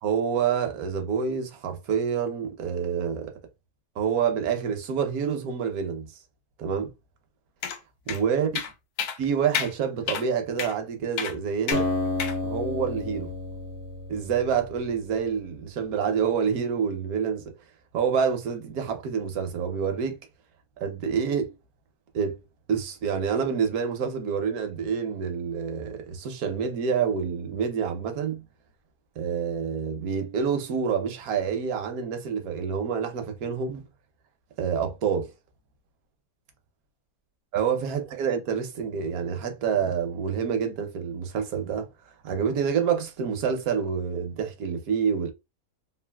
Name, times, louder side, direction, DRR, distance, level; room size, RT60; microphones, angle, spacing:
voice 1, 0.0-3.3 4.0-6.1 6.6-6.9 8.1-8.5 9.2-11.9 12.4-13.3 14.1-17.4 17.9-20.2 20.8-21.5 22.1-22.4 22.7-28.4 29.2-33.8 34.6-35.3 37.5-41.9 42.2-45.3, right 7 dB, 75° right, 1.2 m, -27 dB
sound 1, 7.6-7.8 8.1-8.2 8.5-8.7 9.0-9.2 9.5-9.7 10.1-10.2 10.6-10.7 11.2-11.3 11.7-11.8 12.2-12.4, left 7 dB, 80° left, 1.1 m, -29 dB
Acoustic guitar, 11.7-15.3, left 2 dB, 55° left, 0.8 m, -31 dB
3.2 x 2.4 x 2.2 m
omnidirectional pair, 1.6 m